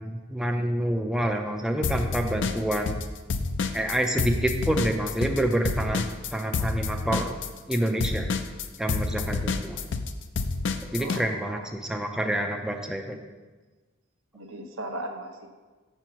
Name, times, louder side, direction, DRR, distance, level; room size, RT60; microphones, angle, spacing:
voice 1, 0.0-3.0 3.7-6.0 6.3-7.3 7.7-8.3 8.8-9.8 10.9-13.2, right 1 dB, 5° right, 2 dB, 0.4 m, -27 dB
sound 1, 1.8-3.0 3.3-11.2, left 4 dB, 60° left, 0.4 m, -28 dB
voice 2, 11.0-11.7 14.3-15.5, right 1 dB, 80° right, 3 dB, 0.8 m, -37 dB
6.9 x 4.5 x 5.8 m, 1.3 s
head